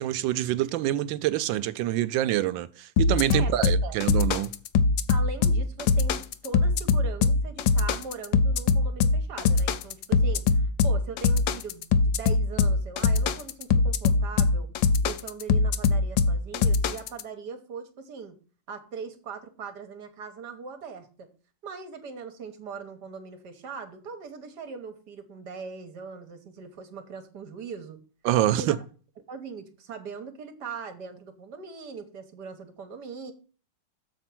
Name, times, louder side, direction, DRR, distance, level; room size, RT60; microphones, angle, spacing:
voice 1, 0.0-4.5 28.2-28.8, right 13 dB, 75° right, 1.3 m, -26 dB
sound 1, 3.0-17.2, left 4 dB, 75° left, 1.3 m, -22 dB
voice 2, 3.3-4.0 5.1-14.7 15.0-18.4 18.7-21.3 21.6-28.0 28.5-28.8 29.3-33.3, right 5 dB, 60° right, 1.5 m, -40 dB
7.4 x 4.4 x 5.9 m
omnidirectional pair, 2.1 m